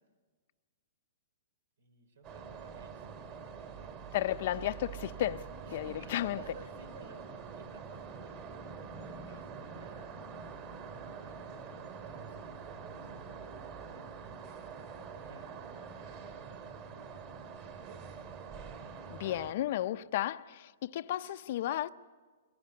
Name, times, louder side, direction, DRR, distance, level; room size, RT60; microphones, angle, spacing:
voice 1, 1.8-3.2 3.6-4.5 5.7-14.4 14.7-17.1 17.5-18.3 18.7-19.0, right 4 dB, 80° right, 3.7 m, -57 dB
sound 1, 2.2-19.5, right 6 dB, 35° right, 2.6 m, -45 dB
voice 2, 4.1-5.4 5.7-6.4 19.1-21.9, left 13 dB, 50° left, 0.6 m, -33 dB
22.5 x 18.5 x 9.6 m
hypercardioid pair, 160°, 0 cm